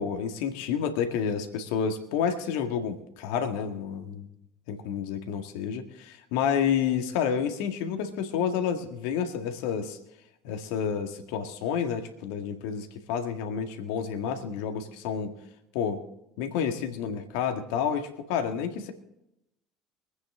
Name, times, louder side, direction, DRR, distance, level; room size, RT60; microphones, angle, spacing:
voice 1, 0.0-4.3 4.7-10.0 10.4-15.3 15.7-16.0 16.4-18.9, left 7 dB, 70° left, 7 dB, 1.8 m, -29 dB
24.5 x 9.5 x 3.7 m, 0.86 s
hypercardioid pair, 65°, 0 cm